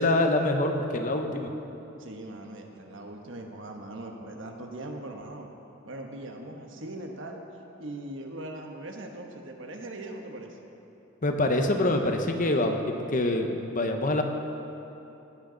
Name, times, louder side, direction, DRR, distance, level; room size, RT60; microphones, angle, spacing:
voice 1, 0.0-1.5 11.2-14.2, left 1 dB, 40° left, 5 dB, 0.9 m, -25 dB
voice 2, 2.0-5.5 5.8-7.4 7.8-10.6, right 1 dB, 60° right, 3 dB, 1.2 m, -40 dB
17.5 x 11.0 x 3.9 m, 2.9 s
head